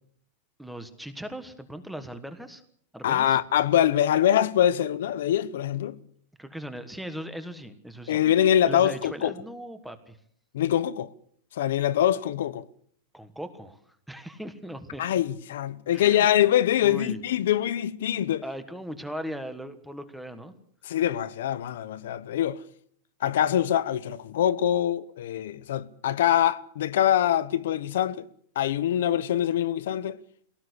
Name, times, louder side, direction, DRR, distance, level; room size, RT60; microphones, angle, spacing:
voice 1, 0.6-2.6 2.9-3.4 6.4-8.2 8.6-10.2 13.1-13.8 14.1-15.0 15.9-16.3 16.8-17.2 18.4-20.5, equal, ahead, 1.4 m, -38 dB
voice 2, 3.0-6.0 8.1-9.3 10.5-11.1 11.5-12.6 15.0-18.4 20.8-22.6 23.2-28.3 28.5-30.2, left 11 dB, 80° left, 1.0 m, -24 dB
23.0 x 17.5 x 8.1 m
supercardioid pair, 180°, 0 cm